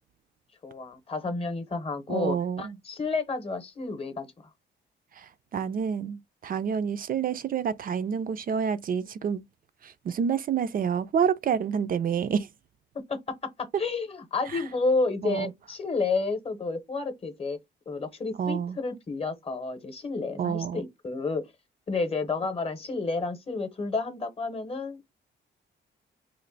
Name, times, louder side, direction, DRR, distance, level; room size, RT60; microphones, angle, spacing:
voice 1, 0.6-4.3 12.9-17.6 17.9-21.4 21.9-25.1, left 3 dB, 30° left, 0.8 m, -30 dB
voice 2, 2.1-2.8 5.2-9.4 9.8-12.5 14.5-14.6 15.2-15.5 18.4-18.8 20.4-20.8, right 7 dB, 45° right, 0.4 m, -28 dB
3.1 x 2.5 x 3.9 m
cardioid pair, 135°, 20 cm